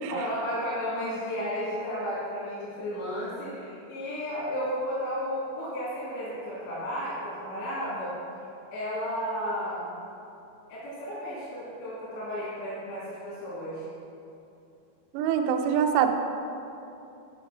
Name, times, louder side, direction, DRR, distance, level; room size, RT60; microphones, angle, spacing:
voice 1, 0.1-8.5 8.7-9.9 10.7-13.9, equal, 85° left, -10 dB, 4.2 m, -33 dB
voice 2, 15.1-16.1, right 8 dB, 80° right, 5 dB, 2.6 m, -24 dB
8.6 x 4.9 x 6.0 m, 2.8 s
omnidirectional pair, 5.1 m